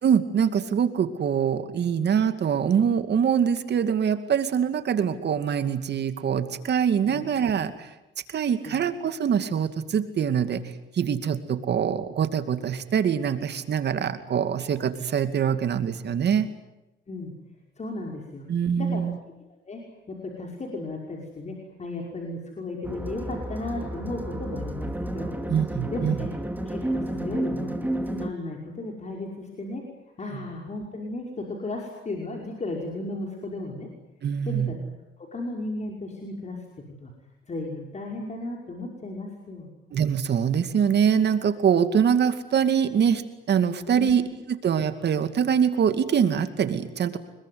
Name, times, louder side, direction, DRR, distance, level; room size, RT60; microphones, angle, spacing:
voice 1, 0.0-7.9 8.3-10.6 10.9-16.5 18.5-19.2 25.5-26.2 30.3-30.5 34.2-34.7 39.9-43.2 43.5-44.2 44.6-47.2, right 8 dB, 60° right, 9 dB, 2.5 m, -24 dB
voice 2, 17.8-18.5 18.8-19.0 19.7-19.8 20.1-25.3 25.9-26.3 26.7-27.7 28.1-29.8 30.2-33.9 34.5-34.8 35.2-36.6 37.0-37.1 37.5-39.7 43.9-44.1, left 2 dB, 35° left, 0 dB, 5.6 m, -35 dB
sound 1, 22.8-28.3, right 1 dB, 10° right, 2.5 m, -31 dB
25.5 x 22.0 x 9.5 m, 0.95 s
cardioid pair, 90°, 20 cm